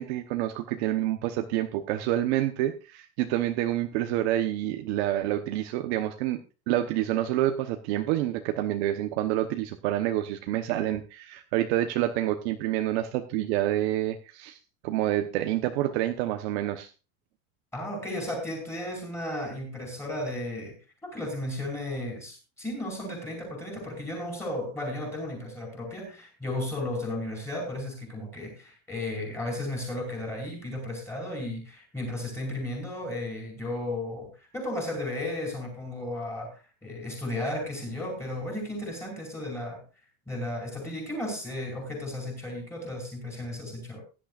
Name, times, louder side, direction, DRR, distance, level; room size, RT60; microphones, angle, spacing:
voice 1, 0.0-14.6 14.8-16.9, right 13 dB, 50° right, 6 dB, 1.1 m, -28 dB
voice 2, 17.7-20.8 21.0-34.3 34.5-39.8 40.3-44.0, left 1 dB, 5° left, 1 dB, 5.1 m, -34 dB
16.5 x 11.5 x 2.5 m, 0.31 s
supercardioid pair, 175°, 43 cm